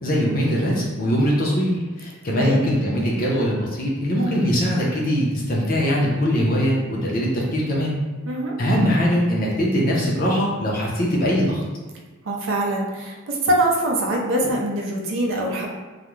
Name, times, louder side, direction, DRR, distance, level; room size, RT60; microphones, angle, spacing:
voice 1, 0.0-8.0 8.6-11.6, equal, 45° left, -3 dB, 0.5 m, -21 dB
voice 2, 12.2-15.7, right 1 dB, 65° right, -1 dB, 0.5 m, -23 dB
2.3 x 2.1 x 3.0 m, 1.3 s
head